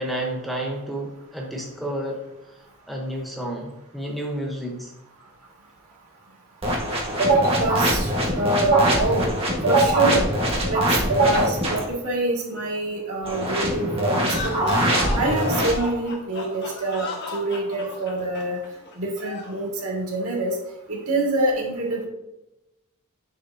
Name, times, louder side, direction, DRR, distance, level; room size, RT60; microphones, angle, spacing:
voice 1, 0.0-2.2 2.9-4.9, right 1 dB, ahead, 0 dB, 0.9 m, -30 dB
sound 1, 6.6-11.9 13.2-15.7, equal, 25° right, 1.4 m, -23 dB
voice 2, 7.2-8.1 8.4-9.3 9.6-10.3 10.7-10.8 11.1-14.8 15.1-18.6 19.0-20.6 20.9-22.1, right 2 dB, 70° right, -2 dB, 2.1 m, -24 dB
sound 2, 14.2-19.6, left 3 dB, 50° left, 1.3 m, -34 dB
7.9 x 6.7 x 2.7 m, 0.93 s
head